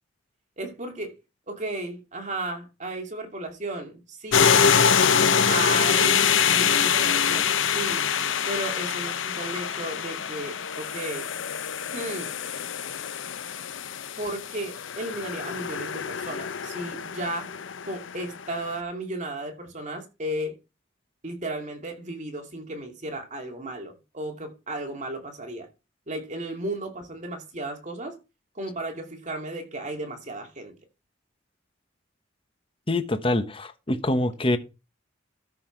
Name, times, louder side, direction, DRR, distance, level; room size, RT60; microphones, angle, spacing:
voice 1, 0.6-1.1 1.5-4.5 5.5-8.1 8.5-11.3 11.9-12.3 14.2-17.6 17.9-20.6 21.2-25.7 26.1-28.2 28.5-30.7, right 1 dB, 40° right, 2.6 m, -34 dB
sound 1, 4.3-18.4, left 7 dB, 80° left, 0.8 m, -25 dB
voice 2, 32.9-34.6, left 1 dB, 30° left, 1.1 m, -25 dB
13.5 x 5.7 x 4.6 m
head